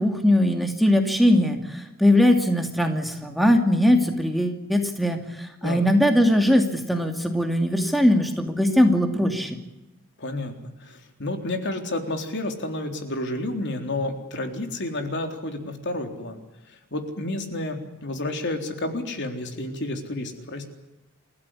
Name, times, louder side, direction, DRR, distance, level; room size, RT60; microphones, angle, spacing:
voice 1, 0.0-9.6, left 1 dB, ahead, 3 dB, 2.6 m, -20 dB
voice 2, 10.2-16.4 16.7-20.7, left 1 dB, 55° left, 5 dB, 3.8 m, -30 dB
29.0 x 15.5 x 9.9 m, 0.95 s
head